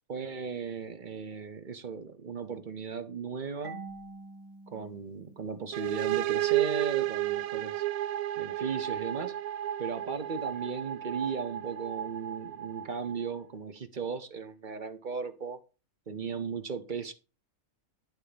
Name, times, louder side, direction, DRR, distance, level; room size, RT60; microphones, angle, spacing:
voice 1, 0.0-3.8 4.7-7.8 8.4-9.3 9.8-15.6 16.1-17.1, right 5 dB, 40° right, 1.0 m, -36 dB
Marimba xylophone / Wood, 3.6-6.4, right 3 dB, 60° right, 2.0 m, -47 dB
sound 1, 5.7-13.4, right 14 dB, 85° right, 1.0 m, -32 dB
11.0 x 4.4 x 5.1 m
omnidirectional pair, 1.5 m